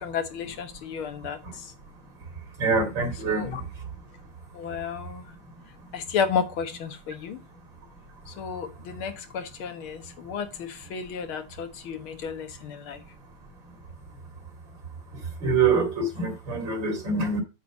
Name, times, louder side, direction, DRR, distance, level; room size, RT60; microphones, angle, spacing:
voice 1, 0.0-1.4 3.3-3.6 4.5-5.3 5.9-7.4 8.3-13.0, left 6 dB, 80° left, 8 dB, 2.1 m, -32 dB
voice 2, 2.6-3.6 15.4-17.4, right 4 dB, 65° right, 3 dB, 3.2 m, -25 dB
8.2 x 4.4 x 7.0 m, 0.28 s
omnidirectional pair, 2.3 m